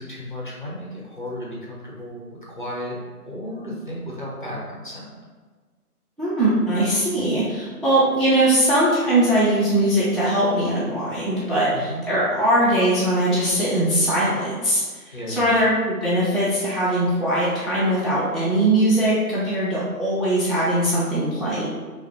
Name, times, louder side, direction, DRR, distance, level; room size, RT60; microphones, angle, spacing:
voice 1, 0.0-3.0 3.2-5.2 11.7-12.1 15.1-15.4, left 1 dB, 35° left, -5 dB, 0.7 m, -34 dB
voice 2, 6.2-21.7, right 1 dB, ahead, -11 dB, 0.4 m, -21 dB
3.1 x 2.4 x 4.1 m, 1.5 s
figure-of-eight pair, 165°, 47 cm